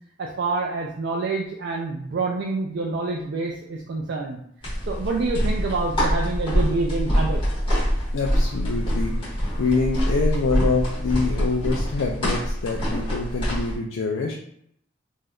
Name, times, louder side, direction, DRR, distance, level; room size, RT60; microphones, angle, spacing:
voice 1, 0.2-4.4 4.9-7.4, right 3 dB, 55° right, 0 dB, 0.3 m, -27 dB
sound 1, 4.6-13.7, equal, 25° left, 1.2 m, -25 dB
voice 2, 8.1-14.3, left 4 dB, 80° left, -1 dB, 0.4 m, -25 dB
3.4 x 2.6 x 2.3 m, 0.69 s
head